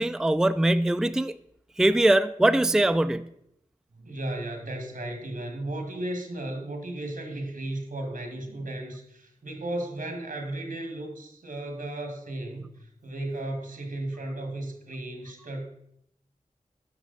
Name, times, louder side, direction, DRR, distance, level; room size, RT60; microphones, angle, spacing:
voice 1, 0.0-1.3 1.8-3.2, right 1 dB, 5° right, 0.3 m, -22 dB
voice 2, 4.0-15.6, right 1 dB, 80° right, 1.8 m, -35 dB
10.5 x 6.2 x 4.1 m
wide cardioid pair, 60°, 14 cm